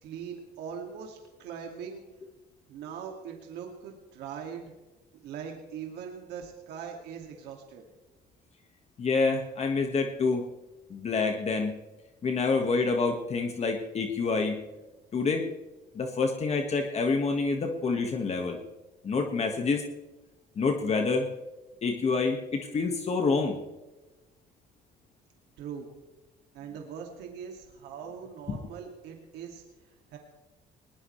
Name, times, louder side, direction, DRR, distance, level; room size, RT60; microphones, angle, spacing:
voice 1, 0.0-2.0 2.7-4.7 5.2-7.8 25.6-25.9 26.5-29.6 30.1-30.2, right 7 dB, 80° right, 1 dB, 2.3 m, -41 dB
voice 2, 9.0-10.4 10.9-11.7 12.2-14.6 15.1-15.4 16.0-18.6 19.0-19.8 20.6-21.3 21.8-23.6 28.5-28.6, left 4 dB, 40° left, 4 dB, 1.7 m, -27 dB
20.5 x 19.5 x 3.3 m, 1.1 s
cardioid pair, 110°, 17 cm